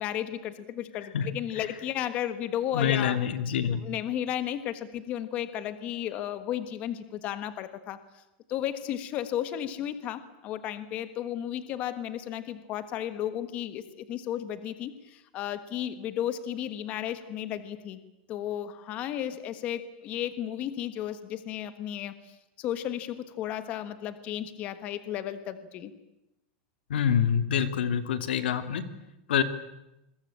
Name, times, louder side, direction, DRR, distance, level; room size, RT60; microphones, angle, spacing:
voice 1, 0.0-3.2 3.7-8.0 8.5-18.0 18.3-22.2 22.6-25.9, left 11 dB, 25° left, 11 dB, 1.4 m, -34 dB
voice 2, 2.7-3.8 26.9-28.8 29.3-29.4, left 8 dB, 90° left, 9 dB, 2.6 m, -26 dB
27.5 x 22.5 x 8.7 m, 0.92 s
supercardioid pair, 180°, 5 cm